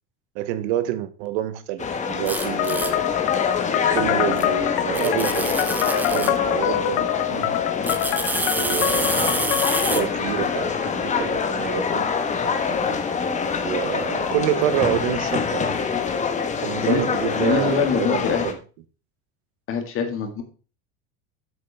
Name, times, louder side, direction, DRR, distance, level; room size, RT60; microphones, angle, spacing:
voice 1, 0.3-3.0 3.9-7.5 8.5-12.1 13.6-15.7 16.6-18.6, right 12 dB, 80° right, 1.0 m, -28 dB
sound 1, 1.8-18.5, left 5 dB, 20° left, 1.2 m, -25 dB
sound 2, 2.3-2.9 4.4-4.5 4.9-6.4 7.8-10.0, right 2 dB, 5° right, 0.7 m, -27 dB
sound 3, 2.6-10.0, left 15 dB, 90° left, 0.7 m, -26 dB
voice 2, 17.4-18.5 19.7-20.4, left 6 dB, 40° left, 1.9 m, -24 dB
7.8 x 7.5 x 3.4 m
supercardioid pair, 130°, 32 cm